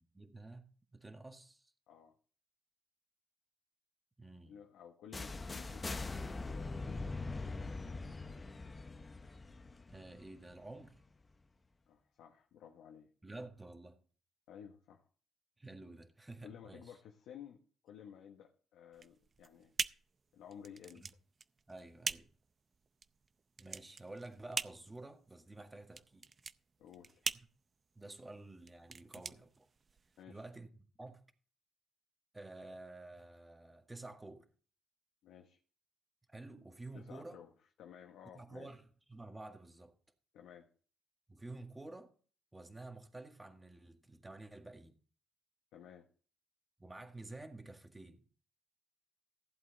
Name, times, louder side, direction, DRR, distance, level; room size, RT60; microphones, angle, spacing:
voice 1, 0.1-1.7 4.2-4.6 9.9-11.0 13.2-14.0 15.6-17.0 20.9-21.1 21.7-22.3 23.6-26.3 27.3-27.5 28.0-29.7 30.3-31.3 32.3-34.5 36.3-37.4 38.3-40.0 41.3-42.1 42.5-44.9 46.8-48.3, right 2 dB, 15° right, 1.8 m, -51 dB
voice 2, 4.5-6.0 6.4-7.3 11.9-13.1 14.5-15.0 16.4-19.7 20.3-21.2 26.8-27.2 30.2-30.4 35.2-35.6 36.9-37.5 37.8-38.7 40.3-40.7 45.7-46.1, left 8 dB, 85° left, 1.2 m, -54 dB
sound 1, 5.1-11.0, left 3 dB, 30° left, 0.9 m, -42 dB
sound 2, 18.9-30.2, right 5 dB, 40° right, 0.5 m, -43 dB
15.0 x 8.1 x 4.1 m
cardioid pair, 80°, 0 cm